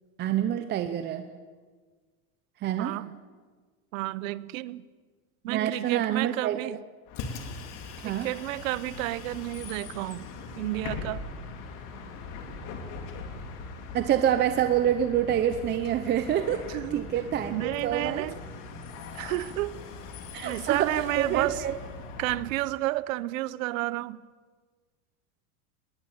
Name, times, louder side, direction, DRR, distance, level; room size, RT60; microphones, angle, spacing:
voice 1, 0.2-1.2 2.6-3.0 5.5-6.8 8.0-8.3 13.9-18.2 20.3-21.8, right 10 dB, 25° right, 0.7 m, -27 dB
voice 2, 2.8-3.1 3.9-4.8 5.4-6.8 8.0-10.3 10.6-11.2 16.7-17.0 17.5-18.4 19.1-19.8 20.4-21.6 22.2-24.2, right 17 dB, 70° right, 0.9 m, -31 dB
Bus, 7.1-22.5, left 4 dB, 45° left, 3.1 m, -40 dB
21.0 x 18.0 x 8.7 m
supercardioid pair, 160°, 42 cm